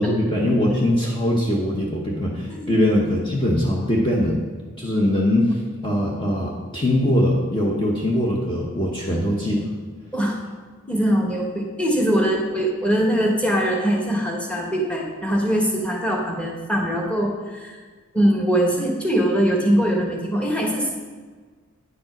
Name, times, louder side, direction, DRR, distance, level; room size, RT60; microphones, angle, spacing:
voice 1, 0.0-4.4 4.8-9.7, left 1 dB, 20° left, -3 dB, 0.9 m, -21 dB
voice 2, 10.9-17.8 18.1-20.9, equal, 5° left, -1 dB, 1.2 m, -22 dB
9.7 x 5.2 x 5.9 m, 1.5 s
head